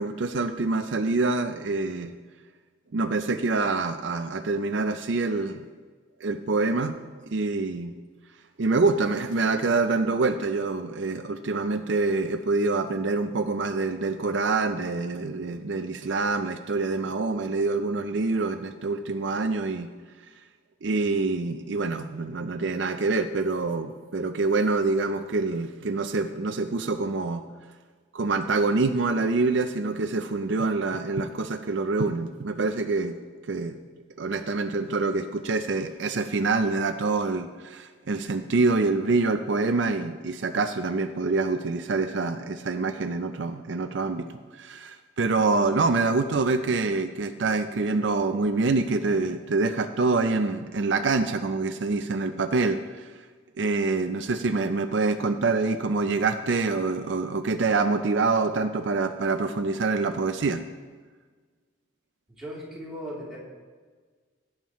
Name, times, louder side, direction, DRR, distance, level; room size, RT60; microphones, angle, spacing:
voice 1, 0.0-2.1 2.9-5.6 6.2-7.0 7.3-7.9 8.6-19.9 20.8-27.4 28.1-33.2 33.5-33.8 34.2-53.1 53.6-60.6, right 3 dB, 65° right, 8 dB, 0.5 m, -26 dB
voice 2, 62.3-63.4, equal, ahead, -7 dB, 3.2 m, -37 dB
17.0 x 8.8 x 3.1 m, 1.5 s
head